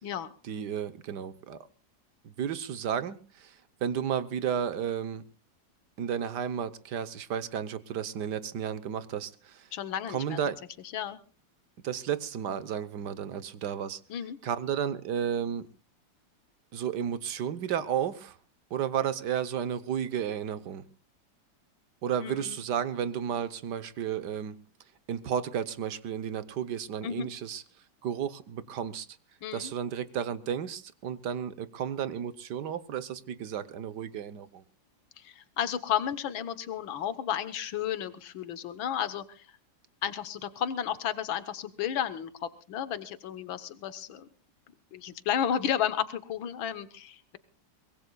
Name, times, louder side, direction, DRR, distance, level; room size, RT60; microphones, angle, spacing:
voice 1, 0.4-1.7 2.2-5.2 6.0-9.7 10.1-10.6 11.8-14.0 14.4-15.7 16.7-18.4 18.7-20.8 22.0-24.6 25.1-27.6 28.0-29.1 29.5-34.6, right 8 dB, 65° right, 1.5 m, -33 dB
voice 2, 9.7-10.4 10.9-11.2 14.1-14.4 22.2-22.6 27.0-27.3 29.4-29.7 35.2-39.6 40.0-44.3 44.9-47.4, left 9 dB, 85° left, 1.9 m, -33 dB
23.5 x 21.0 x 2.3 m
omnidirectional pair, 2.1 m